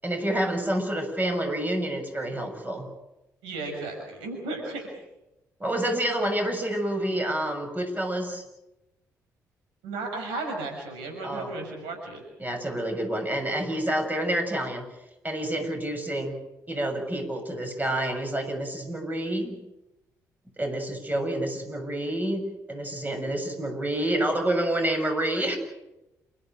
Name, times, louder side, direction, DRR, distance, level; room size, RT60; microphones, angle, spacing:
voice 1, 0.0-2.9 5.6-8.4 11.2-11.5 12.4-14.9 15.2-16.4 16.7-19.6 20.6-25.6, right 1 dB, 20° right, 5 dB, 7.0 m, -28 dB
voice 2, 3.4-4.9 9.8-12.2, right 2 dB, 75° right, 4 dB, 6.1 m, -34 dB
28.5 x 14.5 x 9.1 m, 0.93 s
hypercardioid pair, 45°, 9 cm